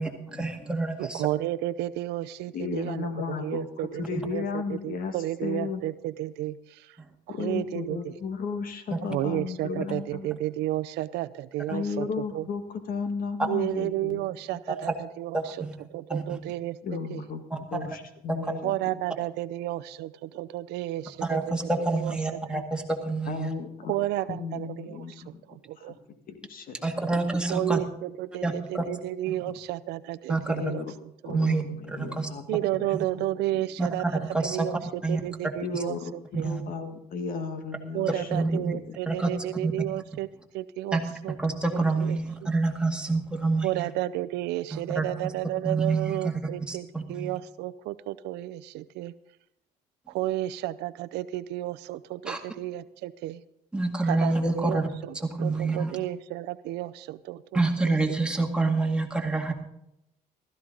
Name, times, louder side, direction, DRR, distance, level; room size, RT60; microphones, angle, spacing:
voice 1, 0.0-1.3 8.9-9.0 14.7-14.9 15.3-16.4 17.5-17.6 18.3-18.5 21.2-23.5 26.8-27.8 28.4-28.8 29.3-29.4 30.3-30.6 31.3-31.6 31.9-32.3 32.9-33.0 33.8-34.7 35.0-35.2 36.3-36.6 38.3-38.7 39.1-39.3 39.6-39.7 40.9-43.9 44.7-45.3 45.6-46.4 46.7-47.3 52.3-52.4 53.7-54.9 55.2-55.9 57.5-59.5, right 3 dB, 5° right, 2 dB, 2.0 m, -27 dB
voice 2, 1.0-6.6 7.4-8.1 9.1-12.1 12.3-12.5 13.5-15.5 15.9-16.8 17.1-17.2 18.6-21.4 21.9-22.2 22.5-22.6 23.9-25.0 25.3-26.0 27.5-30.4 30.6-30.8 31.2-31.4 32.5-34.1 34.4-34.8 35.1-36.5 37.9-40.3 40.5-41.0 41.2-41.4 41.7-42.2 43.6-49.1 50.1-53.4 54.1-55.1 55.4-57.6 57.9-58.2, right 15 dB, 85° right, 14 dB, 0.6 m, -32 dB
voice 3, 2.5-5.8 7.3-10.3 11.7-14.2 16.8-19.0 23.3-25.4 25.8-25.9 26.3-26.8 30.5-30.9 31.2-33.3 33.5-33.6 35.6-36.1 36.4-38.8, left 5 dB, 60° left, 8 dB, 1.7 m, -34 dB
15.5 x 14.0 x 3.9 m, 0.81 s
cardioid pair, 110°, 17 cm